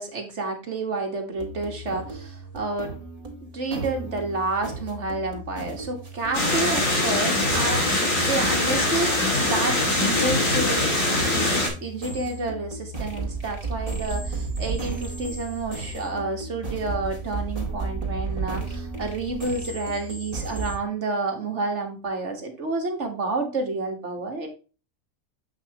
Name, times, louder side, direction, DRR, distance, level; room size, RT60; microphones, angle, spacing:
voice 1, 0.0-2.9 3.4-11.0 11.3-24.5, right 3 dB, 55° right, 4 dB, 1.9 m, -30 dB
sound 1, 1.4-20.8, right 3 dB, 25° right, 2.1 m, -34 dB
sound 2, 6.3-11.7, left 2 dB, 65° left, 2.9 m, -23 dB
7.6 x 5.8 x 2.9 m, 0.33 s
omnidirectional pair, 1.5 m